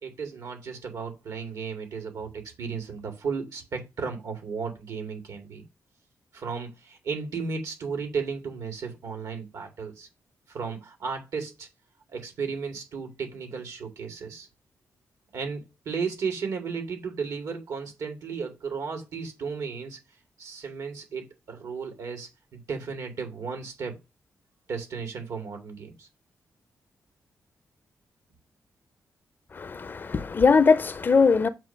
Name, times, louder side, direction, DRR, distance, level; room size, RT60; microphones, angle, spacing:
voice 1, 0.0-5.7 6.3-10.1 10.5-11.7 12.1-14.5 15.3-20.0 20.4-23.9 24.7-26.1, right 5 dB, 80° right, 2.3 m, -34 dB
voice 2, 29.5-31.5, left 5 dB, 35° left, 0.6 m, -20 dB
7.5 x 2.7 x 5.7 m
wide cardioid pair, 130°, 6 cm